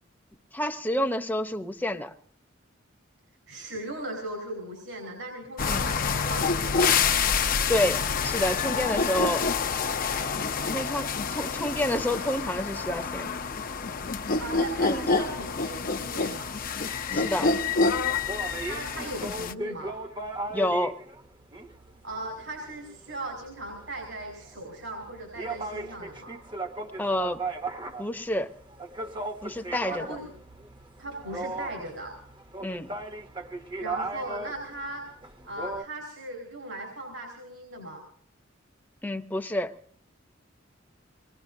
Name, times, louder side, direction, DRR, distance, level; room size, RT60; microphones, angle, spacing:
voice 1, 0.5-2.1 5.7-6.0 7.7-9.5 10.7-13.3 14.9-15.3 17.1-17.5 20.5-21.0 27.0-27.4 28.0-28.5 29.4-30.1 32.6-32.9 39.0-39.7, left 1 dB, 10° left, 6 dB, 0.8 m, -29 dB
voice 2, 3.5-7.2 14.4-16.5 18.6-19.9 22.0-26.4 29.7-30.3 31.0-32.1 33.8-35.0 35.4-38.0, right 1 dB, 80° right, 0 dB, 4.4 m, -38 dB
sound 1, 5.6-19.5, left 5 dB, 45° left, 0.6 m, -27 dB
sound 2, 16.8-35.8, right 2 dB, 25° right, 0.9 m, -38 dB
25.0 x 20.0 x 2.7 m, 0.62 s
head